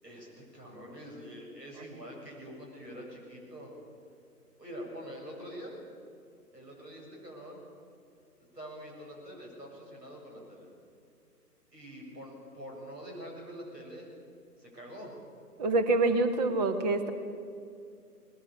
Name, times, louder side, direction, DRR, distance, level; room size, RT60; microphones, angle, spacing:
voice 1, 0.0-3.7 4.6-5.8 6.5-7.6 8.5-10.7 11.7-14.1 14.6-15.1, equal, 80° right, -1 dB, 7.4 m, -45 dB
voice 2, 15.6-17.1, right 2 dB, 25° right, 8 dB, 1.5 m, -26 dB
20.0 x 18.5 x 8.3 m, 2.4 s
figure-of-eight pair, 135°, 48 cm